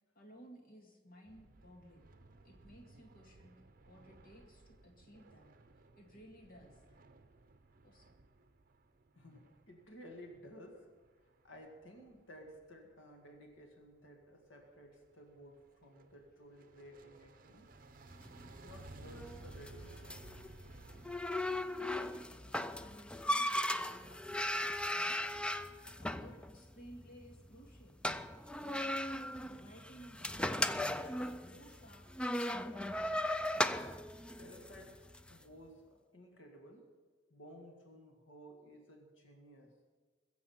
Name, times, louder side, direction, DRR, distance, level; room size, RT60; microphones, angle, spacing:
voice 1, 0.2-2.1 2.4-3.5 3.9-5.5 6.0-6.8 7.8-8.2 21.8-22.5 22.8-25.2 26.0-28.0 28.6-28.9 29.4-32.1 32.5-33.2, equal, 50° left, 1 dB, 2.1 m, -57 dB
sound 1, 1.3-13.5 14.0-14.2 14.6-21.2, right 2 dB, 50° right, 0.8 m, -58 dB
voice 2, 9.1-10.9 11.4-17.7 18.4-20.5 34.4-36.9 37.3-39.7, equal, 90° left, 2 dB, 2.0 m, -55 dB
sound 2, 18.1-35.3, left 1 dB, 5° left, 0.4 m, -38 dB
21.5 x 7.6 x 5.8 m, 1.4 s
head